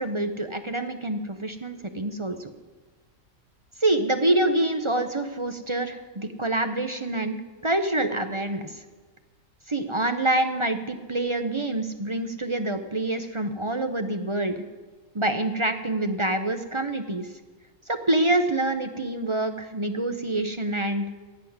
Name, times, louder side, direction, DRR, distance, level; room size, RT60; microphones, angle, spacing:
voice 1, 0.0-2.5 3.8-8.8 9.7-14.6 15.1-17.3 17.9-21.1, right 1 dB, 25° right, 8 dB, 0.7 m, -26 dB
17.0 x 7.3 x 9.4 m, 1.3 s
omnidirectional pair, 1.4 m